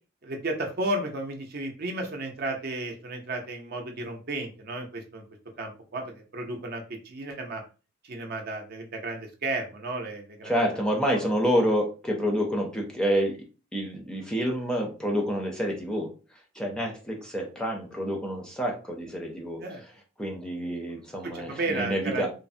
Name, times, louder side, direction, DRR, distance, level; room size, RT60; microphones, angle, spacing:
voice 1, 0.2-5.2 5.6-7.6 8.0-10.5 11.1-11.2 19.6-19.8 21.2-22.3, right 2 dB, 50° right, 3 dB, 0.6 m, -33 dB
voice 2, 10.4-13.4 13.7-16.1 16.5-19.6 20.2-22.3, equal, 5° left, 0 dB, 0.5 m, -28 dB
3.2 x 2.0 x 2.6 m, 0.34 s
head